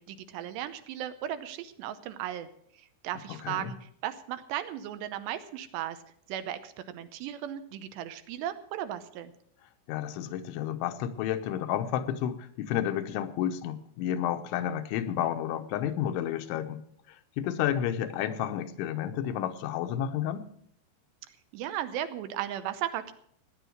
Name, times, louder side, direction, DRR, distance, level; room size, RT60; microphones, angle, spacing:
voice 1, 0.0-2.5 2.8-6.0 6.3-9.3 21.5-23.1, right 11 dB, 80° right, 11 dB, 2.8 m, -36 dB
voice 2, 3.3-3.7 9.9-16.8 17.1-20.5, left 10 dB, 85° left, 8 dB, 3.3 m, -31 dB
16.5 x 10.0 x 6.4 m, 0.66 s
omnidirectional pair, 5.3 m